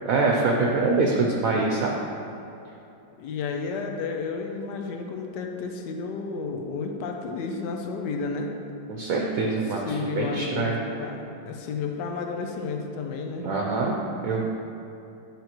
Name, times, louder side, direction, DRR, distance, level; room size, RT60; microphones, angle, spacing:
voice 1, 0.0-2.0 8.9-10.8 13.4-14.4, right 3 dB, 65° right, -1 dB, 0.9 m, -24 dB
voice 2, 3.2-8.5 9.7-11.2 11.5-13.5, left 4 dB, 90° left, 3 dB, 1.2 m, -32 dB
8.7 x 5.5 x 2.9 m, 2.8 s
omnidirectional pair, 1.8 m